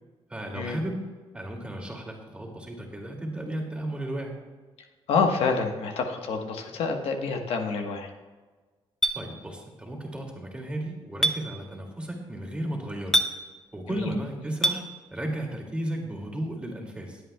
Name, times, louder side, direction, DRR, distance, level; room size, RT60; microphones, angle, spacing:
voice 1, 0.3-1.0 1.3-4.3 9.1-13.2 13.7-14.8 15.1-17.2, right 1 dB, 10° right, 0 dB, 2.3 m, -34 dB
voice 2, 5.1-8.1 13.9-14.1, left 4 dB, 85° left, 4 dB, 1.2 m, -27 dB
Chink clink, 9.0-9.2 11.2-11.4 13.1-13.3 14.6-14.8, equal, 5° left, 0.8 m, -22 dB
20.5 x 8.2 x 2.3 m, 1.3 s
cardioid pair, 115°, 10 cm